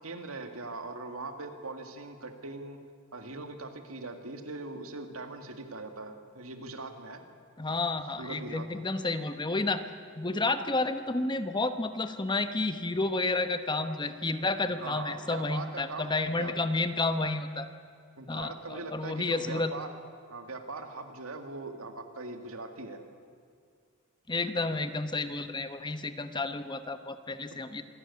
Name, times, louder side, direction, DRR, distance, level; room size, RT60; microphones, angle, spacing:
voice 1, 0.0-2.8 3.1-7.2 8.2-8.8 14.8-16.5 18.2-19.9 20.3-23.0 27.5-27.6, right 3 dB, 85° right, 6 dB, 2.2 m, -41 dB
voice 2, 7.6-9.8 10.1-17.7 18.3-19.7 24.3-27.8, left 2 dB, 20° left, 10 dB, 1.0 m, -31 dB
26.0 x 13.0 x 9.8 m, 2.3 s
head